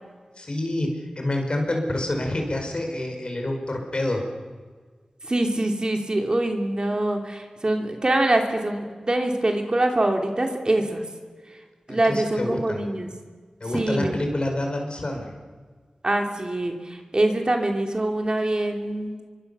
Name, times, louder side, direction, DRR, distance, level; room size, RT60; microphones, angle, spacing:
voice 1, 0.4-4.2 11.9-12.8 13.6-15.3, left 1 dB, 50° left, 3 dB, 5.2 m, -27 dB
voice 2, 5.2-11.1 11.5-11.6 11.9-13.1 13.7-14.1 16.0-19.1, right 1 dB, 40° right, 3 dB, 2.9 m, -24 dB
26.0 x 24.0 x 7.0 m, 1.5 s
wide cardioid pair, 55°, 2 cm